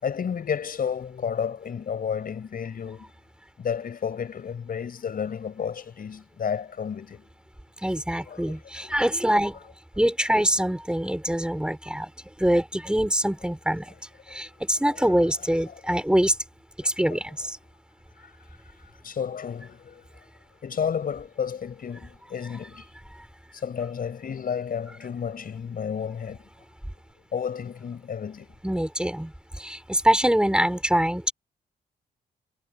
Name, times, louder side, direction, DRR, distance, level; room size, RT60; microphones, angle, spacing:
voice 1, 0.0-3.1 3.6-7.3 8.1-9.0 14.3-14.4 14.9-15.8 17.1-17.2 19.0-20.1 20.6-22.9 23.5-26.4 27.3-28.5, left 7 dB, 55° left, 5.6 m, -32 dB
voice 2, 7.8-9.6 10.0-12.1 12.4-13.9 14.3-16.3 16.8-17.6 28.6-31.3, equal, 5° right, 3.6 m, -24 dB
cardioid pair, 75°, 17 cm